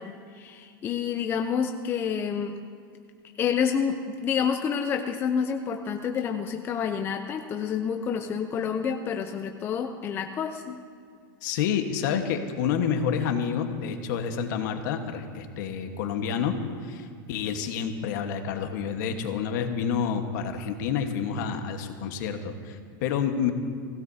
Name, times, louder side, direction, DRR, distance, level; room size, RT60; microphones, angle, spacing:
voice 1, 0.0-2.6 3.2-10.8, left 7 dB, 20° left, 5 dB, 0.5 m, -29 dB
voice 2, 11.4-16.6 16.8-23.5, left 7 dB, 55° left, 6 dB, 1.4 m, -29 dB
24.0 x 16.5 x 2.8 m, 2.2 s
supercardioid pair, 160°, 12 cm